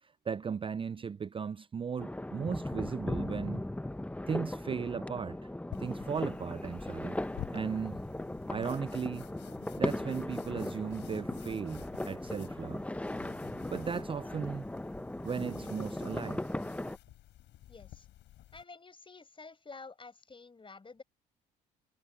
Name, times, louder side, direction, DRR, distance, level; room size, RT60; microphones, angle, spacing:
voice 1, 0.0-3.6 4.3-5.5 5.8-7.2 7.5-8.0 8.5-9.2 9.8-12.9 13.7-14.7 15.2-16.4, right 6 dB, 25° right, 0.5 m, -36 dB
sound 1, 2.0-17.0, left 1 dB, 5° left, 1.1 m, -38 dB
sound 2, 5.7-18.6, left 14 dB, 65° left, 4.9 m, -52 dB
voice 2, 17.7-18.1 18.5-21.0, left 4 dB, 25° left, 5.9 m, -50 dB
hypercardioid pair, 60°, 20 cm